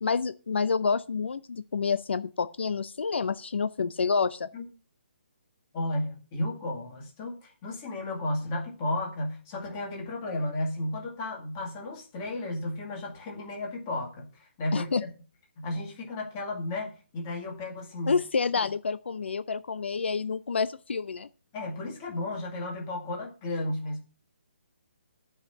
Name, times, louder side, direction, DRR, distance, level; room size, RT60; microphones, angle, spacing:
voice 1, 0.0-4.5 14.7-15.0 18.1-21.3, left 5 dB, 70° left, 0.6 m, -28 dB
voice 2, 5.7-14.9 15.6-18.2 21.5-24.0, left 1 dB, 15° left, 2.2 m, -33 dB
11.0 x 5.7 x 6.6 m
hypercardioid pair, 175°, 6 cm